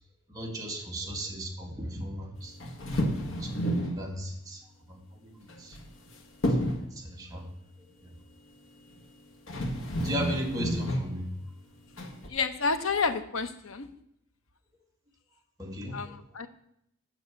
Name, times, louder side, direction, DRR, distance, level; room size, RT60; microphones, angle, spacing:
voice 1, 0.3-2.6 3.4-3.7 4.0-4.6 4.9-5.8 6.4-7.5 8.0-8.1 10.0-11.3 15.6-16.2, equal, 20° right, -1 dB, 1.9 m, -36 dB
sound 1, 2.6-4.0 5.5-6.1 6.4-6.9 9.0-9.1 9.5-11.1 12.0-12.3, equal, 70° left, 1.5 m, -30 dB
voice 2, 12.3-13.9 15.9-16.5, left 4 dB, 90° left, 10 dB, 0.9 m, -30 dB
9.1 x 6.2 x 8.3 m, 0.75 s
head